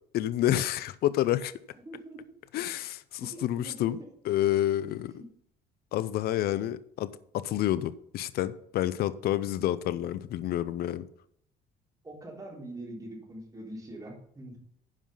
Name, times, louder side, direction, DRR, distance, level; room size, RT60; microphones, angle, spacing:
voice 1, 0.1-1.5 2.5-4.0 4.3-5.2 5.9-11.1, left 13 dB, 70° left, 15 dB, 0.6 m, -29 dB
voice 2, 1.9-2.2 3.2-3.7 5.2-5.3 12.0-14.6, right 1 dB, 20° right, -2 dB, 3.9 m, -43 dB
9.9 x 5.6 x 5.5 m, 0.68 s
cardioid pair, 110°, 17 cm